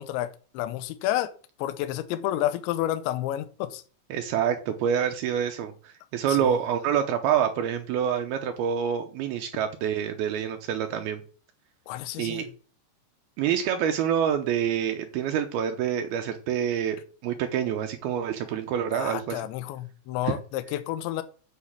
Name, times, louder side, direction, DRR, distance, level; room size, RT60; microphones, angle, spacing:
voice 1, 0.0-1.3 1.6-3.8 6.3-6.5 11.9-12.4 18.9-21.2, left 13 dB, 80° left, 2.9 m, -30 dB
voice 2, 4.1-11.2 12.2-12.5 13.4-17.0 17.2-19.4 20.3-20.4, right 9 dB, 85° right, 2.2 m, -27 dB
8.3 x 6.2 x 7.3 m
omnidirectional pair, 5.4 m